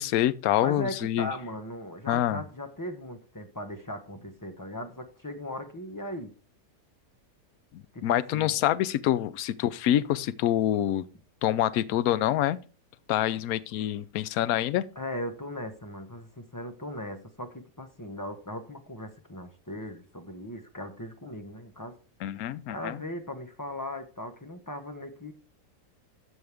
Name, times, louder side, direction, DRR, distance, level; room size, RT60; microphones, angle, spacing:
voice 1, 0.0-1.3 2.1-2.4 7.7-11.0 11.4-12.6 13.1-14.8 22.2-23.0, left 12 dB, 70° left, 1.0 m, -26 dB
voice 2, 0.6-6.3 7.9-8.6 14.9-21.9 22.7-25.3, left 1 dB, 15° left, 1.0 m, -38 dB
13.5 x 6.4 x 3.5 m
omnidirectional pair, 1.7 m